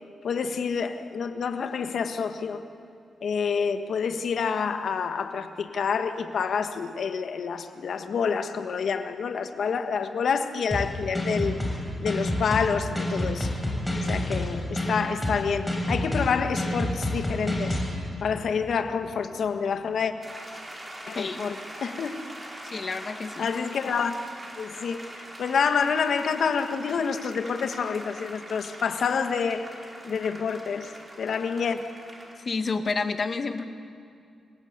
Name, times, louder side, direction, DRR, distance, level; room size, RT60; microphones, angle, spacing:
voice 1, 0.2-2.6 3.2-11.6 12.0-13.5 14.1-17.8 18.2-20.1 21.1-22.2 23.4-24.1 24.6-29.7 30.0-30.9 31.2-31.9, left 6 dB, 70° left, 8 dB, 1.5 m, -28 dB
sound 1, 10.7-17.9, left 1 dB, 5° left, 5.5 m, -28 dB
sound 2, 20.2-32.3, right 1 dB, 20° right, 4.3 m, -43 dB
voice 2, 21.1-21.5 22.6-23.5 32.4-33.6, left 4 dB, 45° left, 7 dB, 1.6 m, -29 dB
28.0 x 17.5 x 8.1 m, 2.4 s
cardioid pair, 95°, 0 cm